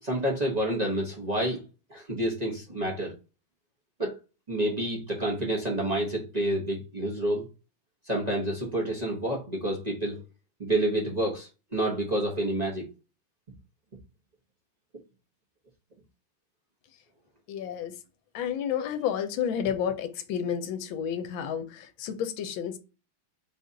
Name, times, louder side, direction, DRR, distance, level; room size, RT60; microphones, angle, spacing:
voice 1, 0.0-1.6 1.9-3.2 4.0-4.2 4.5-7.5 8.1-10.2 10.6-12.9, right 1 dB, 35° right, 0.7 m, -29 dB
voice 2, 17.5-18.0 18.3-22.8, left 8 dB, 80° left, 1.4 m, -31 dB
4.0 x 2.5 x 3.9 m
omnidirectional pair, 2.2 m